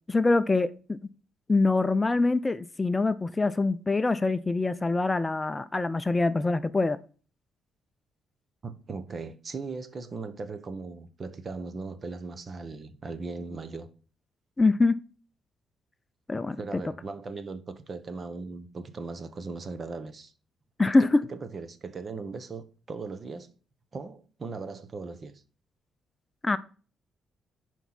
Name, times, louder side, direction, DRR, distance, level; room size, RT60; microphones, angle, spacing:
voice 1, 0.1-1.0 1.5-7.0 14.6-15.0 16.3-16.6 20.8-21.2 26.4-26.6, left 3 dB, 20° left, 0.5 m, -24 dB
voice 2, 8.6-13.9 16.6-20.3 21.3-23.5 23.9-25.4, right 4 dB, 40° right, 1.0 m, -38 dB
10.5 x 4.6 x 4.1 m
cardioid pair, 90°, 0 cm